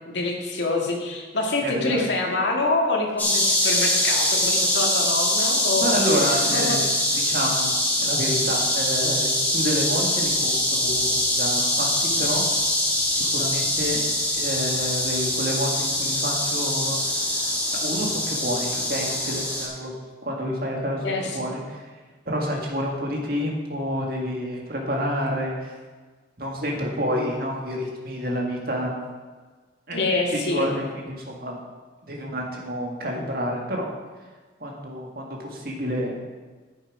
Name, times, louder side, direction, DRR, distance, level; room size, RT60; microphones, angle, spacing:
voice 1, 0.1-6.0 6.5-6.8 21.0-21.4 29.9-30.7, left 2 dB, 85° left, 0 dB, 2.0 m, -26 dB
voice 2, 1.6-2.0 5.8-6.9 7.3-7.7 8.0-12.4 13.1-14.0 14.3-19.9 20.2-21.8 22.3-25.7 26.4-29.0 29.9-30.0 30.3-31.6 32.1-33.9 34.6-36.1, equal, 55° right, -1 dB, 2.0 m, -29 dB
sound 1, 3.2-19.7, left 1 dB, 10° left, 2.4 m, -23 dB
10.5 x 8.1 x 4.9 m, 1.4 s
head